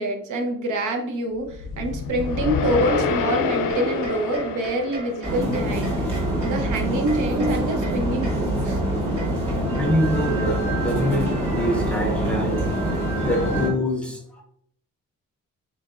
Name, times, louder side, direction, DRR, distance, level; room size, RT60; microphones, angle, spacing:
voice 1, 0.0-6.0 6.4-8.8, right 1 dB, 70° right, 4 dB, 0.8 m, -26 dB
sound 1, 1.5-5.8, left 4 dB, 80° left, 0.6 m, -27 dB
sound 2, 3.7-10.3, right 2 dB, 45° right, 1.4 m, -39 dB
sound 3, 5.2-13.7, right 1 dB, 20° right, 1.6 m, -25 dB
voice 2, 9.4-14.4, equal, 5° left, -1 dB, 0.6 m, -26 dB
5.1 x 4.0 x 2.4 m, 0.70 s
wide cardioid pair, 175°, 32 cm